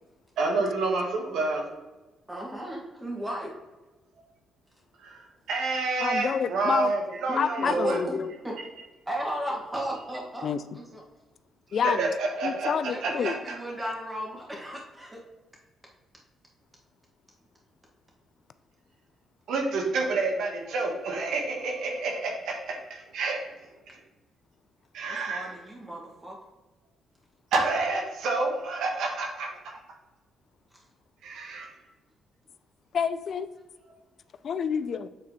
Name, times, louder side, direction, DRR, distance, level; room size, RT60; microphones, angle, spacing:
voice 1, 0.4-1.6 5.0-5.2 5.5-8.0 11.8-12.7 13.0-13.6 19.5-23.4 23.9-24.0 24.9-25.5 27.5-29.5 31.2-31.7, right 3 dB, 75° right, 1 dB, 1.4 m, -28 dB
voice 2, 2.3-3.5 7.3-8.2 8.4-8.5 9.1-10.5 10.7-11.0 12.9-15.2 25.0-26.4, equal, 15° right, -2 dB, 1.9 m, -35 dB
voice 3, 6.0-6.9 7.4-8.3 10.4-10.6 11.7-12.1 12.4-13.3 32.9-33.5 34.4-35.1, left 7 dB, 55° left, 13 dB, 0.3 m, -28 dB
8.1 x 4.1 x 3.2 m, 1.1 s
cardioid pair, 90°, 0 cm